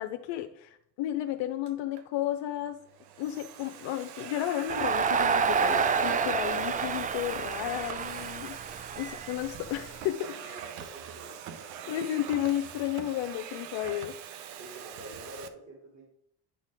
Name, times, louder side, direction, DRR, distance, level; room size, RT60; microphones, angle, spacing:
voice 1, 0.0-2.8 3.2-10.6 11.9-14.1, left 13 dB, 65° left, 6 dB, 0.7 m, -33 dB
Domestic sounds home sounds, 1.7-2.0 2.8-15.5, right 9 dB, 85° right, 0.8 m, -43 dB
Crowd, 4.7-9.9, right 6 dB, 20° right, 0.3 m, -29 dB
voice 2, 10.4-12.0 14.6-16.0, right 1 dB, 35° right, -3 dB, 2.7 m, -47 dB
9.7 x 4.3 x 3.5 m, 0.68 s
hypercardioid pair, 60°, 48 cm